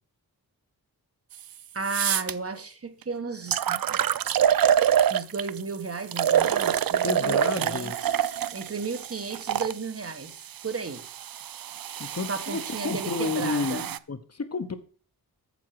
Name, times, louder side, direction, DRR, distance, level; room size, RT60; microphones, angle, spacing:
sound 1, 1.3-1.4 1.8-2.3 3.0-3.1 3.5-5.6 6.1-9.7 10.6-14.0, right 9 dB, 65° right, 0.5 m, -26 dB
voice 1, 1.7-4.0 5.1-7.9 8.2-10.3 10.6-11.1 12.3-13.9, right 4 dB, 35° right, 1.1 m, -34 dB
voice 2, 7.0-8.0 12.0-14.8, left 4 dB, 40° left, 1.0 m, -31 dB
9.3 x 7.2 x 4.7 m
wide cardioid pair, 105°, 39 cm